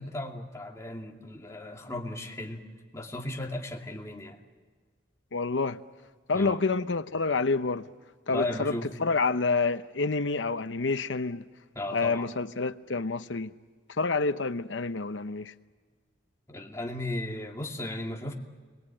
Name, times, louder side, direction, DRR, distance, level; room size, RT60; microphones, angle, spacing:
voice 1, 0.0-2.6 2.9-4.4 6.3-6.6 8.3-8.9 11.7-12.3 16.5-18.3, left 1 dB, 15° left, 2.4 m, -35 dB
voice 2, 5.3-5.8 6.3-7.9 8.3-11.4 11.9-13.5 14.0-15.5, left 4 dB, 80° left, 0.8 m, -28 dB
29.0 x 22.5 x 8.9 m
head